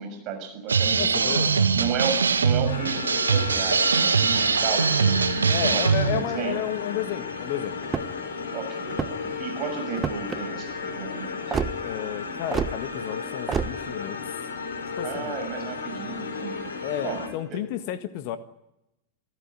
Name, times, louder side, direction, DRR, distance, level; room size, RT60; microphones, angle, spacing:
voice 1, 0.0-1.5 1.7-6.6 8.5-11.4 15.0-16.7 17.0-17.6, right 6 dB, 40° right, 6 dB, 6.7 m, -33 dB
sound 1, 0.7-6.2, right 5 dB, 75° right, 1.5 m, -22 dB
voice 2, 1.0-1.7 5.5-7.8 11.8-14.2 15.0-15.3 16.8-18.4, left 11 dB, 45° left, 10 dB, 1.6 m, -32 dB
sound 2, 2.7-17.3, left 5 dB, 65° left, 5.0 m, -34 dB
sound 3, 7.8-8.3 8.9-9.3 10.0-10.4 11.5-11.7 12.5-12.7 13.5-13.7, right 6 dB, 20° right, 1.1 m, -27 dB
27.5 x 15.0 x 10.0 m, 0.89 s
figure-of-eight pair, 90°, 0 cm